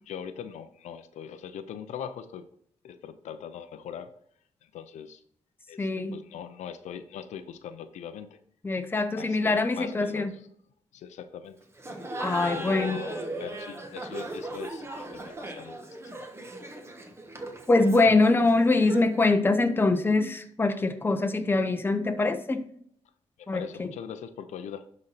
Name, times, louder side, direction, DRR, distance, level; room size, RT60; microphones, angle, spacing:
voice 1, 0.1-2.4 2.8-4.1 4.6-5.2 5.7-8.4 9.2-10.4 10.9-11.6 12.4-15.8 16.2-16.3 23.4-24.9, left 8 dB, 90° left, 10 dB, 0.7 m, -41 dB
voice 2, 5.8-6.2 8.6-10.3 12.2-13.0 17.7-22.7 23.5-23.9, left 3 dB, 20° left, 8 dB, 0.8 m, -24 dB
Laughter, 11.8-19.2, right 2 dB, 20° right, 1.2 m, -38 dB
11.5 x 4.3 x 4.1 m, 0.66 s
cardioid pair, 115°, 12 cm